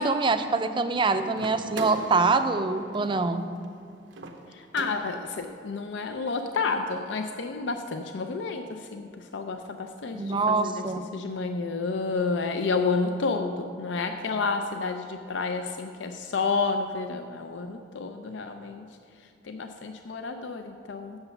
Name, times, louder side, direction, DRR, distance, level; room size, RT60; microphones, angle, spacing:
voice 1, 0.0-3.4 10.1-11.1, right 3 dB, 25° right, 8 dB, 0.4 m, -25 dB
sound 1, 1.3-5.4, right 2 dB, 75° right, 0.8 m, -41 dB
voice 2, 4.5-10.9 11.1-18.8 19.4-21.2, left 4 dB, 75° left, 6 dB, 0.5 m, -30 dB
8.0 x 6.8 x 6.9 m, 2.4 s
head